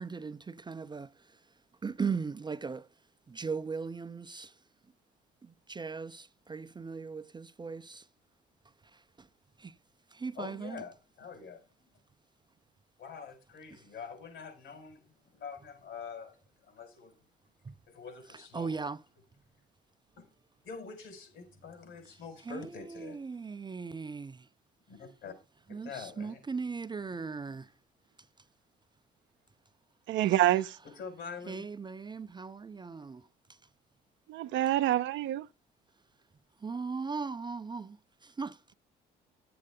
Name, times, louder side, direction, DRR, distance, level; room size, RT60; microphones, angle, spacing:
voice 1, 0.0-2.9 3.3-4.6 5.4-8.1 8.8-9.3 9.6-9.8 10.1-10.8 13.7-13.9 17.6-17.8 18.3-19.0 22.1-24.5 25.7-27.7 30.2-30.4 31.5-33.6 36.6-38.6, right 5 dB, 20° right, 0.5 m, -39 dB
voice 2, 10.4-11.9 13.0-16.4 16.6-17.3 17.9-18.7 20.2-20.3 20.6-23.2 24.9-25.3 25.7-26.4 31.0-31.7, left 6 dB, 70° left, 5.0 m, -45 dB
voice 3, 30.1-30.8 34.3-35.5, right 13 dB, 65° right, 0.7 m, -27 dB
11.5 x 7.8 x 3.7 m
hypercardioid pair, 65°, 21 cm